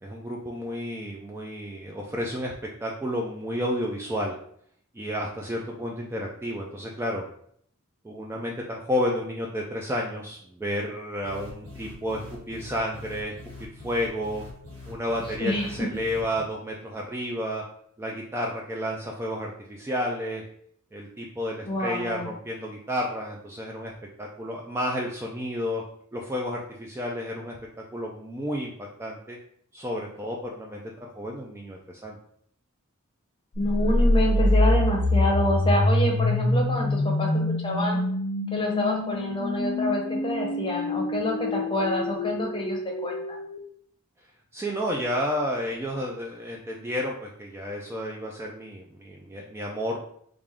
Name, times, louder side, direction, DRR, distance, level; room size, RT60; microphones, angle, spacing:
voice 1, 0.0-2.5 2.8-4.3 4.9-7.2 8.0-13.3 13.8-14.4 14.9-17.6 18.0-20.4 20.9-23.9 24.2-25.8 26.1-28.7 29.0-29.4 29.7-32.2 44.5-50.0, equal, 10° right, -1 dB, 0.3 m, -31 dB
sound 1, 11.2-16.4, left 3 dB, 85° right, 1.5 m, -44 dB
voice 2, 15.4-15.9 21.6-22.3 33.6-38.0 38.5-43.4, left 1 dB, 25° left, 0 dB, 0.7 m, -27 dB
sound 2, 33.6-43.6, left 1 dB, 65° left, 0.5 m, -25 dB
3.4 x 2.5 x 3.5 m, 0.65 s
head